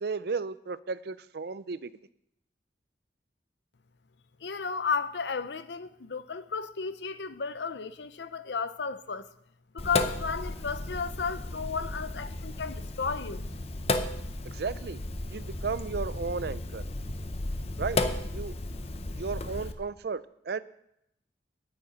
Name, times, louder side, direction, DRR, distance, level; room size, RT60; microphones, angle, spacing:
voice 1, 0.0-1.9 14.4-15.0 15.3-16.8 17.8-18.0 18.3-18.5 19.2-20.6, right 4 dB, 60° right, 0.5 m, -34 dB
voice 2, 4.4-9.3 9.7-13.4, left 5 dB, 75° left, 0.7 m, -33 dB
Sink (filling or washing), 9.8-19.7, left 2 dB, 35° left, 0.7 m, -34 dB
9.6 x 6.7 x 8.6 m
head